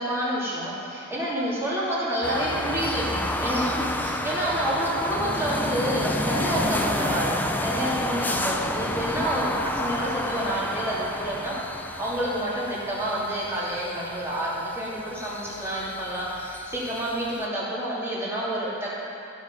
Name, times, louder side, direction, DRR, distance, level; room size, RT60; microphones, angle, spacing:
voice 1, 0.0-11.6 12.0-19.0, right 1 dB, 10° right, -8 dB, 2.8 m, -28 dB
sound 1, 2.2-17.5, left 1 dB, 10° left, 0.5 m, -30 dB
15.0 x 6.3 x 5.5 m, 2.7 s
head